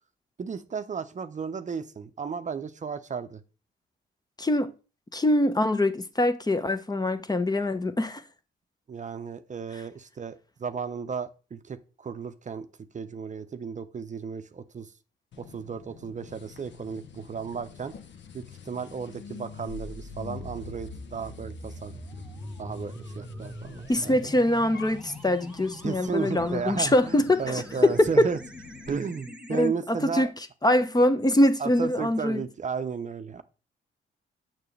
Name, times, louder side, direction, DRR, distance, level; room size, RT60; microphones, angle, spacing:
voice 1, 0.4-3.4 8.9-10.3 10.6-12.7 12.9-14.9 15.4-17.9 18.3-22.3 22.6-24.1 25.8-28.4 28.9-30.3 31.6-33.4, right 6 dB, 35° right, 0.6 m, -34 dB
voice 2, 4.4-4.7 5.1-8.2 23.9-28.3 29.5-30.3 30.6-32.4, left 1 dB, 20° left, 0.8 m, -23 dB
sound 1, 15.3-29.0, left 6 dB, 65° left, 1.0 m, -46 dB
sound 2, 19.7-29.7, equal, 5° right, 1.1 m, -44 dB
6.7 x 6.0 x 3.2 m
supercardioid pair, 55°, 20 cm